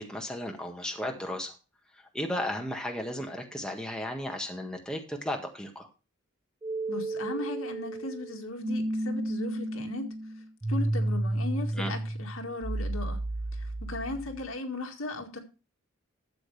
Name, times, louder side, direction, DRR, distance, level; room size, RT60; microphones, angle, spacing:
voice 1, 0.0-1.5 2.1-5.9 11.7-11.9, left 1 dB, 5° left, 1.6 m, -34 dB
sound 1, 6.6-14.5, right 1 dB, 20° right, 0.7 m, -32 dB
voice 2, 6.9-10.1 10.7-13.2 13.5-15.4, left 2 dB, 70° left, 2.0 m, -37 dB
12.5 x 7.7 x 3.3 m
head